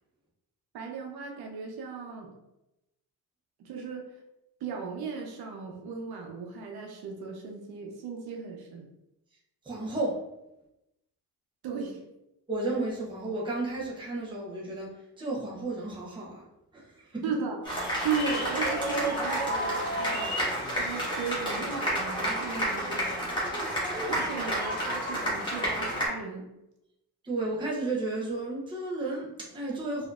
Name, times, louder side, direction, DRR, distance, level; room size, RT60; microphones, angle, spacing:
voice 1, 0.7-2.3 3.6-4.1 4.6-8.9 11.6-12.0 17.2-17.6 18.0-23.1 24.1-26.5, right 5 dB, 80° right, 1 dB, 0.8 m, -36 dB
voice 2, 9.6-10.2 12.5-14.9 15.2-16.4 16.7-17.2 27.2-30.1, right 2 dB, 15° right, -5 dB, 0.8 m, -33 dB
sound 1, 17.6-26.1, equal, 10° left, 1.2 m, -30 dB
4.2 x 2.7 x 2.4 m, 0.90 s
cardioid pair, 155°, 36 cm